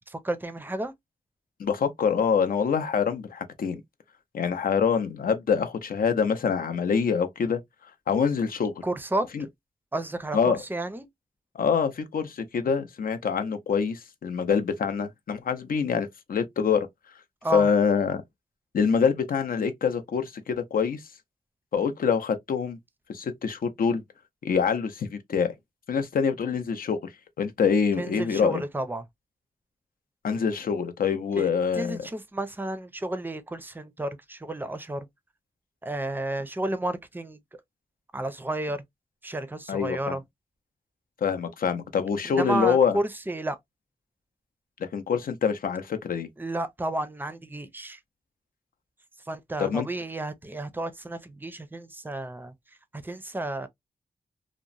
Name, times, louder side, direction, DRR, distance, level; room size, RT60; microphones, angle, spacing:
voice 1, 0.1-0.9 8.8-9.3 9.9-11.1 17.4-17.7 28.0-29.1 31.4-35.1 35.8-37.4 38.1-38.8 39.2-40.2 42.2-43.6 46.4-48.0 49.2-52.5 52.9-53.7, right 1 dB, 15° right, 0.5 m, -32 dB
voice 2, 1.6-3.8 4.3-7.6 8.1-8.7 9.3-9.4 10.3-10.6 11.5-16.9 17.5-18.2 18.7-21.0 21.7-22.8 23.1-24.0 24.4-25.5 25.9-27.0 27.4-28.6 30.2-32.0 39.7-40.2 41.2-43.0 44.9-46.3 49.6-49.9, left 6 dB, 70° left, 0.6 m, -25 dB
2.8 x 2.1 x 2.5 m
wide cardioid pair, 100°, 15 cm